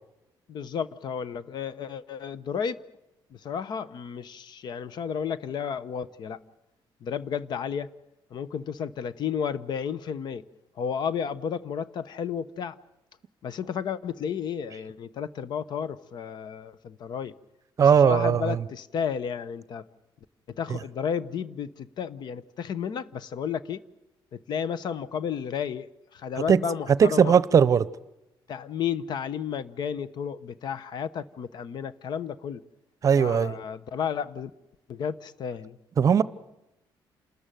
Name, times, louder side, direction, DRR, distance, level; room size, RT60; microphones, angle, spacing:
voice 1, 0.5-2.8 3.3-6.4 7.0-7.9 8.3-10.4 10.8-12.8 13.4-17.3 17.8-19.8 20.5-23.8 24.3-27.4 28.5-32.6 33.2-34.5 34.9-35.8, left 7 dB, 55° left, 1.0 m, -32 dB
voice 2, 17.8-18.6 26.5-26.6 27.0-27.9 33.0-33.6 36.0-36.2, right 7 dB, 40° right, 0.8 m, -19 dB
28.5 x 13.5 x 9.2 m
cardioid pair, 140°, 9 cm